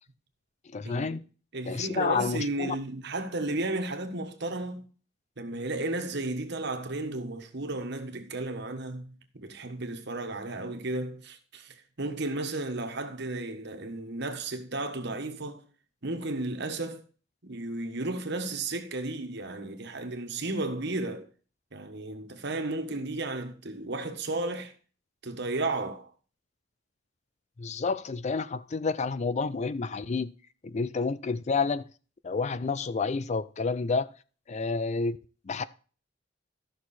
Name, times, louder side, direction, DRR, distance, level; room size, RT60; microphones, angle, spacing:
voice 1, 0.7-1.2 1.7-2.8 27.6-30.3 30.6-31.9 32.2-34.1 34.5-35.2 35.5-35.6, left 4 dB, 35° left, 0.4 m, -29 dB
voice 2, 1.5-4.9 5.4-15.6 16.0-17.0 17.4-21.3 21.7-24.7 25.2-26.1, right 2 dB, 60° right, 1.4 m, -33 dB
13.0 x 6.3 x 4.3 m
head